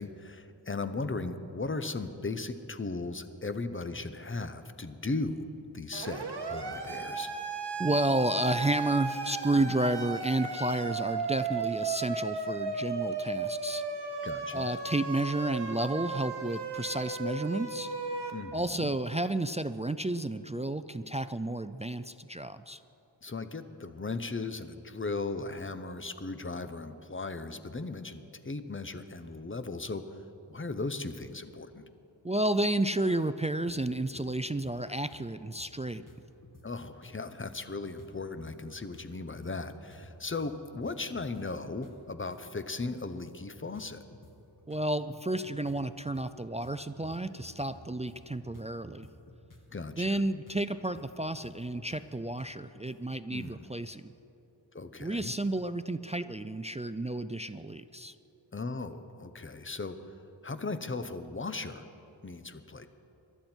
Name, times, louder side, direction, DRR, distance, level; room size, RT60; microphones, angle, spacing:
voice 1, 0.0-5.5 5.7-7.3 14.2-14.7 18.3-18.9 23.2-30.0 30.5-31.8 36.6-44.0 49.7-50.2 53.3-53.7 54.7-55.3 58.5-60.0 60.4-61.8 62.2-62.9, left 3 dB, 25° left, 10 dB, 0.8 m, -37 dB
Siren, 5.9-18.3, right 4 dB, 60° right, 1.6 m, -35 dB
voice 2, 7.8-13.8 14.5-17.9 18.5-22.8 32.2-36.0 44.7-49.1 50.0-54.1 55.0-58.1, right 1 dB, 15° right, 12 dB, 0.3 m, -31 dB
sound 1, 33.6-34.7 35.1-35.2 35.6-35.7 35.9-36.7 37.0-42.4 42.8-42.9 43.3-44.3 44.7-50.1 50.4-53.2, left 2 dB, 45° left, 1.8 m, -54 dB
22.5 x 12.5 x 4.4 m, 2.9 s
wide cardioid pair, 80°, 46 cm